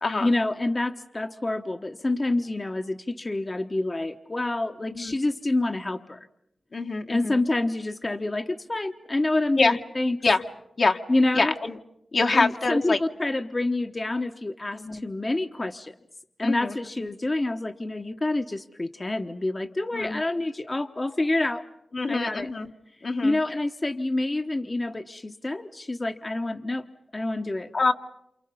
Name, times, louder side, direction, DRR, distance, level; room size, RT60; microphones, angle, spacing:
voice 1, 0.2-6.3 7.1-10.2 11.1-11.5 12.4-15.9 16.4-21.7 22.1-22.5 23.2-26.9 27.1-27.7, left 2 dB, 35° left, 7 dB, 1.2 m, -27 dB
voice 2, 6.7-7.4 9.6-9.8 10.2-10.4 10.8-11.0 11.3-11.8 12.1-13.0 14.8-15.0 16.4-16.7 17.0-17.1 19.9-20.2 21.9-22.7 23.0-23.4 27.7-27.9, left 3 dB, 65° left, 4 dB, 1.6 m, -25 dB
28.5 x 28.0 x 5.6 m, 0.82 s
cardioid pair, 40°, 0 cm